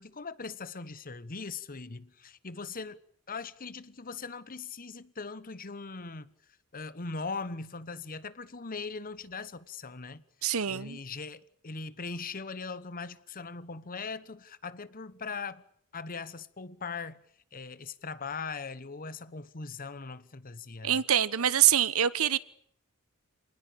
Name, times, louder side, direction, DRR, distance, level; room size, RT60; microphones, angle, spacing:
voice 1, 0.0-3.0 3.3-6.3 6.7-10.2 10.7-15.6 15.9-17.2 17.5-21.0, left 4 dB, 40° left, 1.1 m, -40 dB
voice 2, 10.4-11.0 20.8-22.4, right 10 dB, 75° right, 1.0 m, -25 dB
27.0 x 19.5 x 8.7 m
head